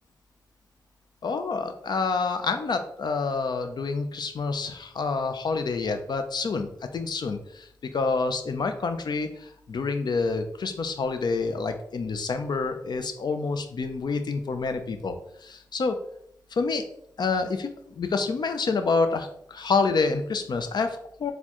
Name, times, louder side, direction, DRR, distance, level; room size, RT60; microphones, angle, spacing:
voice 1, 1.2-7.7 7.9-15.2 15.4-16.0 16.5-16.8 17.2-21.3, left 4 dB, 75° left, 7 dB, 0.5 m, -28 dB
4.3 x 2.2 x 2.9 m, 0.70 s
cardioid pair, 55°, 7 cm